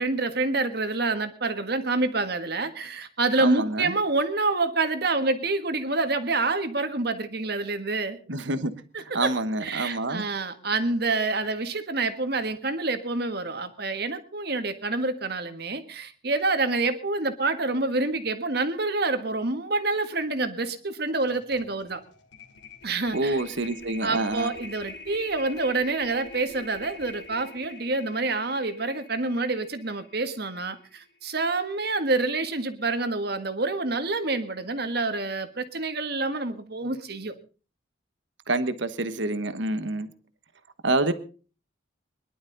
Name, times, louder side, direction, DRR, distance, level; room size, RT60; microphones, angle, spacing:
voice 1, 0.0-8.2 8.9-9.3 9.6-22.0 22.8-23.4 24.0-37.3, right 3 dB, 55° right, 9 dB, 1.6 m, -27 dB
voice 2, 3.4-3.9 8.3-8.7 9.1-10.2 23.1-24.5 38.5-40.1 40.8-41.1, right 2 dB, 70° right, 11 dB, 1.3 m, -27 dB
sound 1, 20.6-20.7 21.0-31.3, left 2 dB, 70° left, 2.7 m, -45 dB
22.5 x 11.5 x 4.0 m, 0.37 s
head